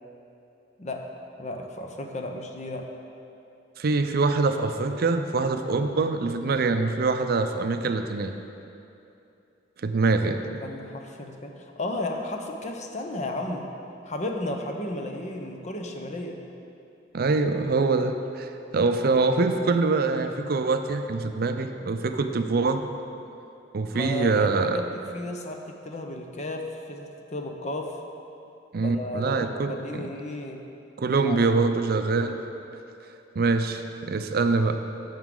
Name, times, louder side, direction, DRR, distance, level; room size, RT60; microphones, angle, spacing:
voice 1, 1.4-2.9 3.9-4.0 10.6-13.7 14.0-16.4 23.9-28.0 28.8-30.6 31.3-31.4, left 1 dB, 40° left, 3 dB, 0.7 m, -34 dB
voice 2, 3.8-8.3 9.8-10.5 17.1-22.9 23.7-24.8 28.7-30.1 31.0-32.4 33.4-34.8, right 3 dB, 55° right, 7 dB, 0.5 m, -24 dB
10.5 x 7.3 x 3.8 m, 2.8 s
head